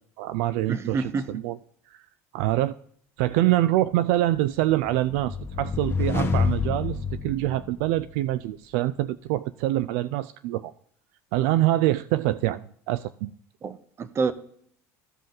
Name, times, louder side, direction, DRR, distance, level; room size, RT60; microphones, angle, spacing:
voice 1, 0.2-1.6 2.3-2.7 3.2-10.7 11.3-13.3, right 15 dB, 75° right, 16 dB, 0.3 m, -25 dB
voice 2, 0.7-1.3 13.6-14.3, right 4 dB, 35° right, 14 dB, 0.9 m, -28 dB
sound 1, 4.4-8.2, left 5 dB, 30° left, 1.3 m, -28 dB
15.0 x 5.3 x 3.8 m, 0.64 s
supercardioid pair, 90°, 8 cm